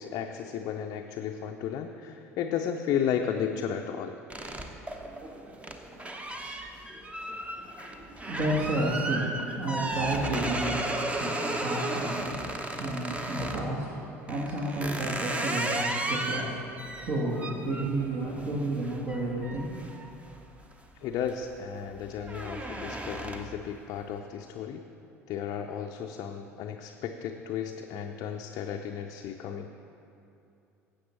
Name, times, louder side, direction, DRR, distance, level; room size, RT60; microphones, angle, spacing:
voice 1, 0.0-4.2 20.9-24.8 25.3-29.7, left 8 dB, 45° left, 3 dB, 0.5 m, -33 dB
sound 1, 4.3-13.7 14.3-20.7 21.1-21.5 21.8-23.7, right 1 dB, 15° right, 0.8 m, -34 dB
voice 2, 7.5-19.8, right 1 dB, 50° right, -5 dB, 1.5 m, -32 dB
15.0 x 7.8 x 3.1 m, 2.7 s
figure-of-eight pair, 65°, 8 cm